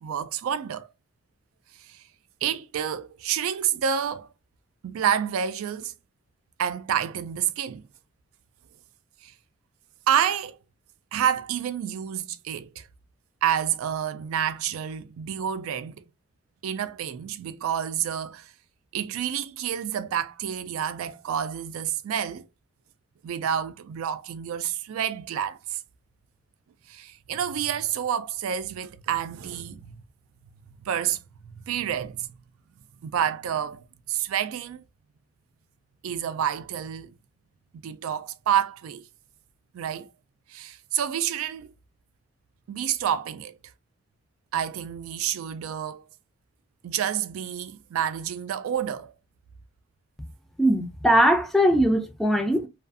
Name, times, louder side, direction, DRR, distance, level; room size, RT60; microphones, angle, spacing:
voice 1, 0.0-0.9 1.8-2.0 2.4-4.3 4.8-5.9 6.6-7.9 9.2-9.3 10.1-10.6 11.1-12.9 13.4-16.1 16.6-18.5 18.9-22.5 23.2-25.8 26.9-30.0 30.8-31.2 31.4-32.3 33.0-34.8 36.0-37.1 37.8-39.1 39.7-40.1 40.5-41.7 42.7-43.6 44.5-46.0 46.8-49.1, right 9 dB, 90° right, 0.3 m, -29 dB
voice 2, 50.6-52.7, equal, ahead, 0.3 m, -20 dB
2.5 x 2.3 x 2.4 m
head